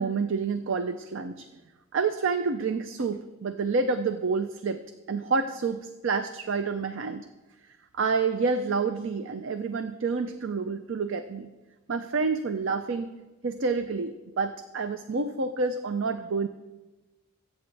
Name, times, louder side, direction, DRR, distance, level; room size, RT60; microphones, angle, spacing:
voice 1, 0.0-1.5 1.9-4.8 5.1-7.3 7.9-11.5 11.9-13.1 13.4-16.5, right 4 dB, 60° right, 9 dB, 0.5 m, -28 dB
20.5 x 9.0 x 3.4 m, 1.2 s
head